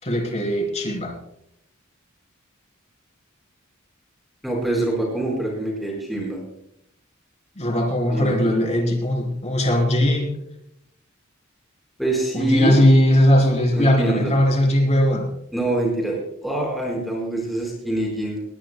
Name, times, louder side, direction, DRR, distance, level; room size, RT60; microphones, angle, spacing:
voice 1, 0.0-1.1 7.6-10.4 12.3-15.3, left 1 dB, 35° left, 2 dB, 3.5 m, -19 dB
voice 2, 4.4-6.4 8.1-8.4 12.0-12.8 13.7-14.3 15.5-18.4, right 2 dB, ahead, -2 dB, 4.4 m, -24 dB
19.5 x 19.5 x 2.2 m, 0.75 s
head